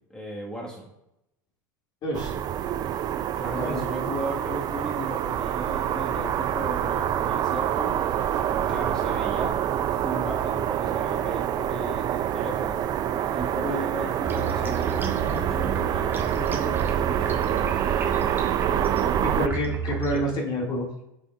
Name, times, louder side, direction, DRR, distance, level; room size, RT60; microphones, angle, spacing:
voice 1, 0.1-0.9 3.4-7.9 8.7-9.6 9.8-17.9, equal, 5° left, -3 dB, 1.6 m, -36 dB
voice 2, 2.0-2.4 3.6-3.8 19.2-20.9, equal, 40° left, -2 dB, 2.3 m, -28 dB
sound 1, 2.1-19.5, right 10 dB, 35° right, 0.5 m, -26 dB
sound 2, 14.2-20.2, right 6 dB, 20° right, 1.5 m, -33 dB
8.4 x 6.8 x 2.4 m, 0.84 s
hypercardioid pair, 80°, 11 cm